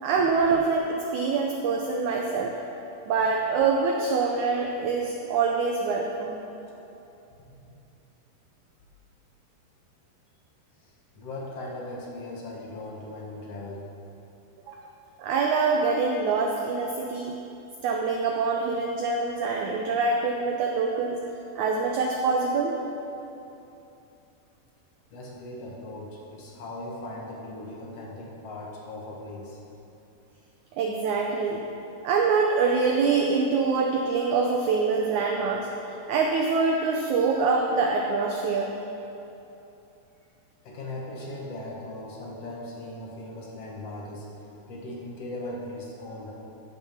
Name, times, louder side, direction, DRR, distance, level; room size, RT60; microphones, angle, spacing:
voice 1, 0.0-2.6 3.1-6.4 14.7-14.8 15.2-17.3 17.8-21.2 21.5-22.7 30.8-31.6 32.0-35.7 36.1-38.7, right 4 dB, 85° right, 1 dB, 1.7 m, -25 dB
voice 2, 10.8-13.9 22.6-22.8 25.1-29.6 40.6-44.3 44.7-46.3, left 1 dB, 60° left, -3 dB, 1.7 m, -39 dB
14.5 x 6.1 x 5.7 m, 2.9 s
omnidirectional pair, 4.3 m